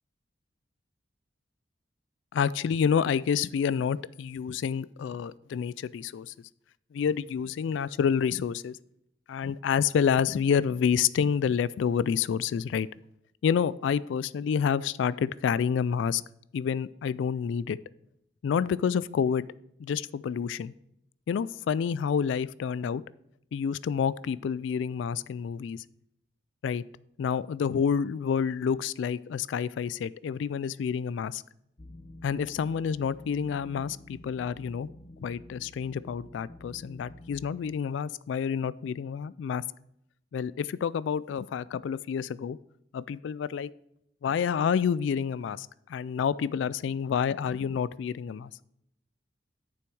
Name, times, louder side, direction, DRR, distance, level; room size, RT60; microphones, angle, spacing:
voice 1, 2.3-6.3 6.9-8.8 9.3-12.9 13.4-16.2 16.5-17.8 18.4-19.5 19.8-20.7 21.3-23.0 23.5-25.8 26.6-26.8 27.2-31.4 32.2-34.9 35.2-39.6 40.3-42.6 42.9-43.7 44.2-48.5, left 7 dB, 75° left, 18 dB, 0.3 m, -28 dB
sound 1, 31.8-37.4, left 1 dB, 30° left, 0.6 m, -49 dB
9.0 x 7.0 x 4.6 m, 0.77 s
head